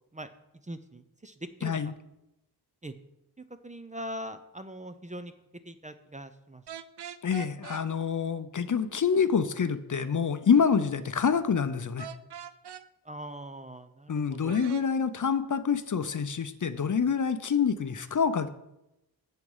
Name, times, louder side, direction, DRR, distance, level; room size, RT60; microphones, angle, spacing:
voice 1, 0.6-1.3 1.6-1.9 2.8-2.9 3.6-5.3 5.7-6.6 13.1-14.6, right 1 dB, 20° right, 9 dB, 0.5 m, -41 dB
voice 2, 1.6-1.9 7.2-12.1 14.1-18.5, left 6 dB, 50° left, 11 dB, 0.6 m, -27 dB
sound 1, 6.7-7.8 12.0-12.8 14.5-14.9, right 9 dB, 85° right, 0.6 m, -42 dB
7.9 x 7.6 x 5.5 m, 0.89 s
wide cardioid pair, 90°, 39 cm